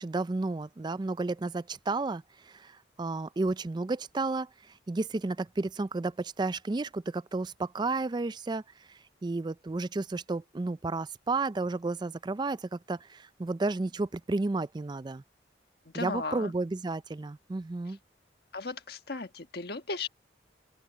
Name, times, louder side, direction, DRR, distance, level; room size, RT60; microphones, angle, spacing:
voice 1, 0.0-4.5 4.9-8.6 8.9-15.2 15.9-18.0, right 3 dB, 25° right, 0.4 m, -32 dB
voice 2, 15.9-16.5 18.5-20.1, left 3 dB, 60° left, 1.5 m, -36 dB
open air
head